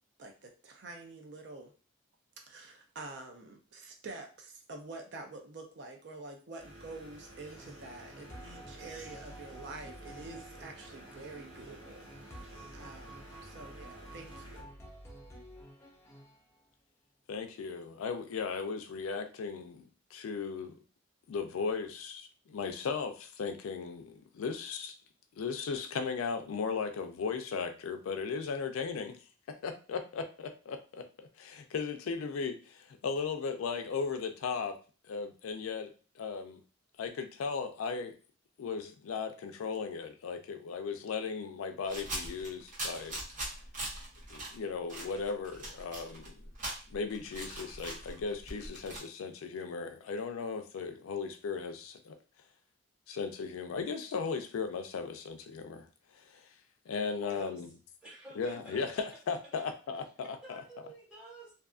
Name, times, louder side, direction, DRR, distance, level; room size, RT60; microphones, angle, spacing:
voice 1, 0.2-1.7 2.5-14.7, right 3 dB, 55° right, 3 dB, 0.4 m, -47 dB
sound 1, 6.6-14.6, right 1 dB, 85° right, 1.3 m, -52 dB
sound 2, 7.4-16.6, right 1 dB, 15° left, 0.3 m, -51 dB
voice 2, 17.3-20.8 21.3-25.0 25.4-29.2 29.5-34.8 35.1-36.6 37.0-38.1 38.6-43.2 44.3-46.4 46.9-52.2 53.1-55.9 56.3-56.4 56.9-57.7 58.4-60.6, left 5 dB, 90° left, 7 dB, 0.4 m, -37 dB
sound 3, 41.8-44.5 44.9-49.0, right 1 dB, 40° right, 0.9 m, -41 dB
voice 3, 57.2-57.6 58.0-59.0 60.2-61.5, right 2 dB, 5° right, -7 dB, 1.2 m, -51 dB
2.6 x 2.4 x 2.3 m, 0.36 s
head